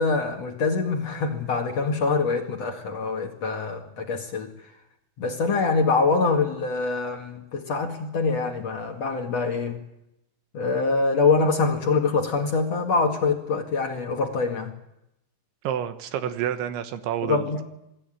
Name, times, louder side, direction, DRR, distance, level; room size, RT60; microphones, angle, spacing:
voice 1, 0.0-4.5 5.2-9.8 10.5-14.7 17.2-17.6, left 4 dB, 50° left, 2.1 m, -24 dB
voice 2, 15.6-17.6, right 10 dB, 75° right, 3.4 m, -29 dB
27.5 x 20.0 x 9.1 m
omnidirectional pair, 5.7 m